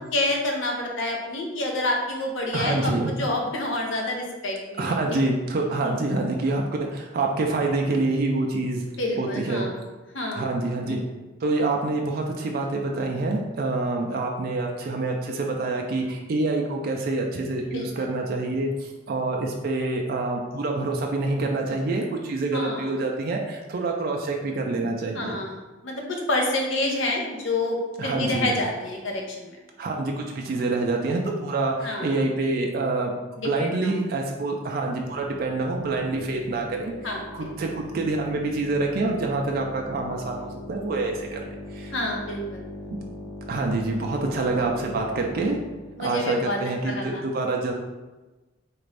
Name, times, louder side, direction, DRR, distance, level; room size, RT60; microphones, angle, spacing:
voice 1, 0.1-5.2 5.8-5.9 9.0-9.8 10.1-10.5 10.9-11.0 17.7-18.1 22.5-22.9 25.1-29.6 31.8-32.2 33.4-33.9 37.0-37.5 41.9-42.7 46.0-46.6 46.8-47.2, left 1 dB, 70° left, 1 dB, 0.7 m, -28 dB
voice 2, 2.5-3.2 4.8-8.8 9.2-9.7 10.3-11.0 11.4-25.4 28.0-28.5 29.8-36.9 37.3-41.9 43.5-45.6 46.0-47.7, right 2 dB, 50° right, 1 dB, 0.3 m, -26 dB
sound 1, 34.8-45.9, left 1 dB, 10° left, 0.5 m, -40 dB
3.9 x 2.5 x 3.3 m, 1.2 s
head